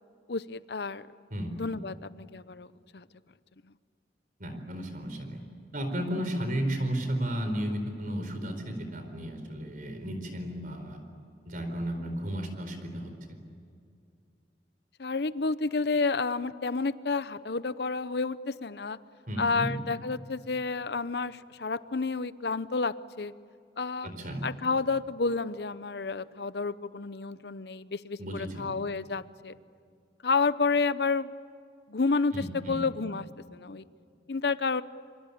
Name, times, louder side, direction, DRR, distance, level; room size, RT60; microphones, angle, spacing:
voice 1, 0.3-1.1 1.6-3.0 15.0-19.0 19.4-23.3 23.8-24.1 24.4-29.5 30.2-31.3 31.9-33.3 33.5-33.8 34.3-34.8, left 4 dB, 60° left, 15 dB, 0.7 m, -30 dB
voice 2, 4.4-5.4 5.7-11.0 11.4-13.4 19.3-19.7 24.0-24.4 28.2-28.7 32.3-32.8, equal, 50° right, 7 dB, 4.4 m, -33 dB
27.0 x 24.5 x 8.6 m, 2.4 s
head